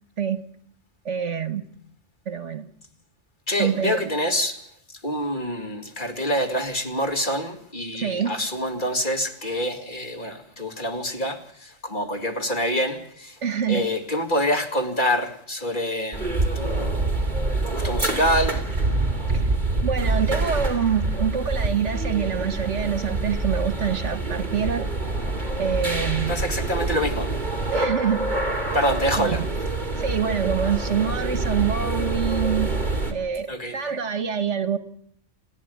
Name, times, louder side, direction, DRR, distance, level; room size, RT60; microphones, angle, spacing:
voice 1, 1.0-1.6 2.2-2.7 3.6-4.1 7.9-8.3 13.4-13.9 19.3-19.5 19.8-24.9 25.6-26.4 27.7-28.2 29.2-29.5 30.0-32.7 33.1-34.8, right 7 dB, 75° right, 1.7 m, -26 dB
voice 2, 3.5-4.6 5.0-13.4 13.7-17.3 17.7-18.6 26.3-27.3 28.7-29.4 33.5-33.7, equal, 40° left, 2.4 m, -26 dB
sound 1, 16.1-33.1, right 2 dB, 35° right, 3.5 m, -26 dB
29.0 x 10.5 x 9.4 m
omnidirectional pair, 1.3 m